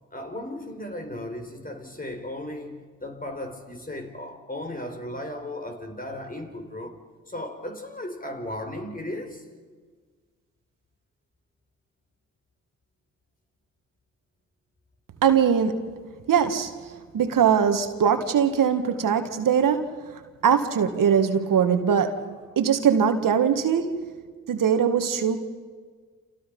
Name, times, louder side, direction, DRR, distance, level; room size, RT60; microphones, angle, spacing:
voice 1, 0.1-9.5, left 1 dB, 25° left, 5.0 m, -36 dB
voice 2, 15.2-15.9 16.3-16.7 17.1-24.0 24.5-25.4, right 7 dB, 65° right, 1.9 m, -22 dB
30.0 x 28.0 x 5.5 m
hypercardioid pair, 40°, 35 cm